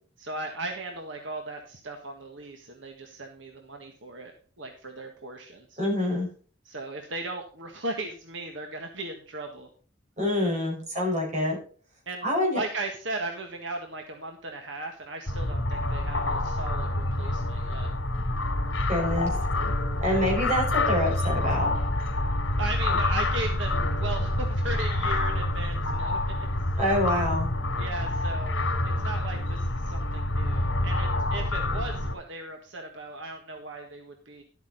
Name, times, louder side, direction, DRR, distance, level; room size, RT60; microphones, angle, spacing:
voice 1, 0.2-4.3 4.6-5.8 6.6-9.7 12.0-17.9 20.0-20.3 22.6-26.2 27.8-34.4, right 2 dB, 70° right, 3 dB, 1.6 m, -37 dB
voice 2, 5.8-6.3 10.2-11.6 12.2-12.6 18.9-19.3 20.0-21.7 26.8-27.5, left 1 dB, 35° right, -1 dB, 5.1 m, -26 dB
sound 1, 15.3-32.1, left 1 dB, 75° left, 2.6 m, -27 dB
12.0 x 8.4 x 4.1 m, 0.42 s
head